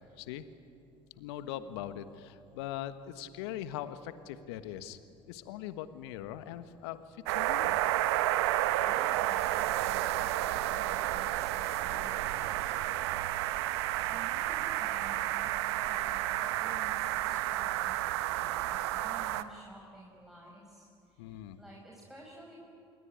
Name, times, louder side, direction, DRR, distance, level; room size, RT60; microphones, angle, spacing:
voice 1, 1.2-5.0 5.3-7.8 21.2-21.6, left 11 dB, 70° left, 12 dB, 1.4 m, -41 dB
sound 1, 7.3-19.4, right 15 dB, 70° right, 1.0 m, -31 dB
voice 2, 8.8-13.2 13.5-15.5 15.8-22.5, right 1 dB, 5° right, -3 dB, 5.3 m, -52 dB
27.5 x 21.0 x 9.7 m, 2.6 s
hypercardioid pair, 65°, 14 cm